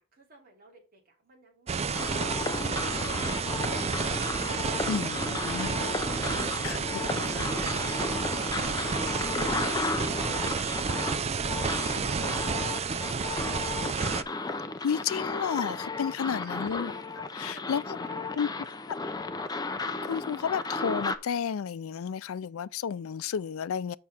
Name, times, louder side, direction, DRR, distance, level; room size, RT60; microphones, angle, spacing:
voice 1, 0.0-2.7 16.3-16.9 17.5-17.7 17.9-18.5 18.9-19.2, right 2 dB, 45° right, 2.9 m, -57 dB
sound 1, 1.7-14.2, right 5 dB, 30° right, 0.4 m, -31 dB
sound 2, 1.9-21.2, left 3 dB, 20° left, 0.6 m, -34 dB
voice 2, 4.9-5.8 6.6-6.8 7.2-7.3 14.8-16.9 17.3-17.8 18.4-18.5 20.0-24.0, left 7 dB, 80° left, 0.4 m, -31 dB
7.6 x 6.1 x 4.3 m
head